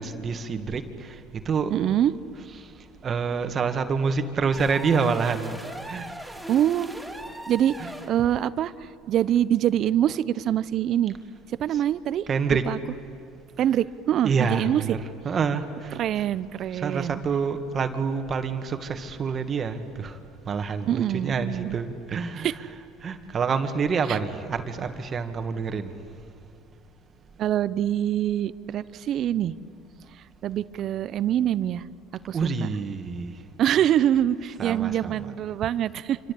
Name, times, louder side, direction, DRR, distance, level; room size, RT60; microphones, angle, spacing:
voice 1, 0.0-1.7 2.6-2.7 3.0-5.6 5.9-6.1 7.8-7.9 11.7-11.8 12.3-12.7 14.2-15.0 15.2-16.0 16.7-20.2 20.5-22.7 23.0-26.0 32.3-33.4 34.6-35.2, right 5 dB, 40° right, 7 dB, 2.1 m, -27 dB
voice 2, 1.7-2.1 6.5-6.9 7.5-7.7 8.1-11.1 11.6-12.2 12.7-12.8 13.6-14.8 16.0-17.2 20.9-21.8 22.4-22.5 24.1-24.2 27.4-29.5 30.4-31.8 32.2-32.7 33.6-36.2, right 11 dB, 55° right, 16 dB, 0.9 m, -24 dB
sound 1, 4.5-8.2, right 1 dB, ahead, 4.0 m, -39 dB
26.5 x 26.0 x 8.6 m, 2.5 s
hypercardioid pair, 80°, 0 cm